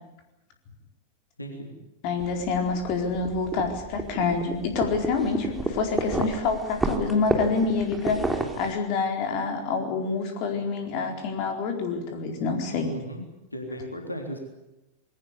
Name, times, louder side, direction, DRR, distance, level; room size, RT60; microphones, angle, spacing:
voice 1, 1.4-1.7 12.7-13.3 13.5-14.4, equal, 85° left, 3 dB, 3.6 m, -36 dB
voice 2, 2.0-12.9, left 4 dB, 45° left, 4 dB, 4.3 m, -27 dB
sound 1, 2.2-8.7, right 2 dB, 10° right, 3.3 m, -31 dB
21.5 x 18.0 x 9.8 m, 0.97 s
figure-of-eight pair, 90°, 0 cm